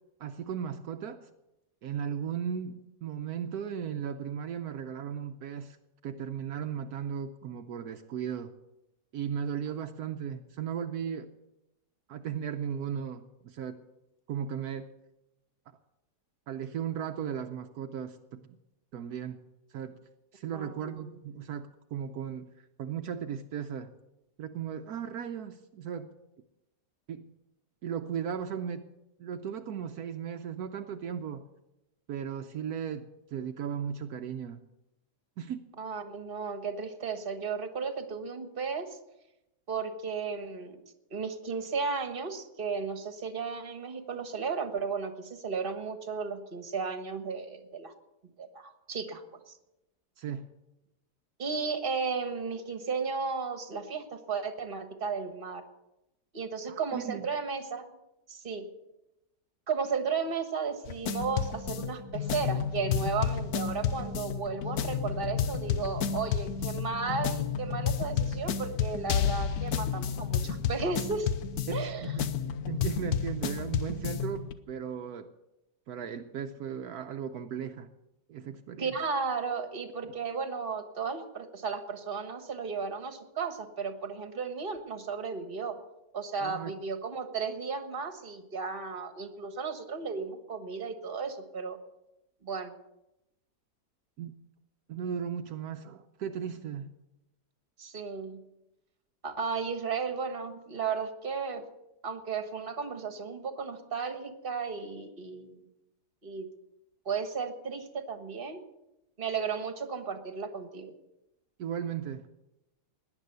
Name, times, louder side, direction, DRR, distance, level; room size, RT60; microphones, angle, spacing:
voice 1, 0.2-1.3 1.8-5.8 6.0-8.5 9.1-11.3 12.1-13.8 14.3-14.9 16.5-18.6 18.9-19.4 19.7-20.0 20.3-22.5 22.8-23.9 24.4-26.1 27.1-27.3 27.8-28.8 29.2-31.5 32.1-34.6 35.4-35.6 50.2-50.5 56.7-57.3 71.7-75.3 75.9-77.9 78.3-78.9 86.4-86.7 94.2-94.3 94.9-96.9 111.6-112.3, right 8 dB, 75° right, 6 dB, 1.2 m, -36 dB
voice 2, 20.5-21.1 35.8-39.0 39.7-40.8 41.1-47.9 48.4-49.2 49.5-49.6 51.4-55.6 56.3-57.9 58.3-58.7 59.7-71.3 71.7-72.1 78.8-85.8 86.1-91.8 92.4-92.7 97.8-98.4 99.2-101.6 102.0-105.6 106.2-106.5 107.0-108.6 109.2-110.9, right 5 dB, 35° right, 8 dB, 1.5 m, -34 dB
sound 1, 60.9-74.5, left 7 dB, 70° left, 1.3 m, -31 dB
18.0 x 10.5 x 6.8 m, 0.92 s
omnidirectional pair, 1.7 m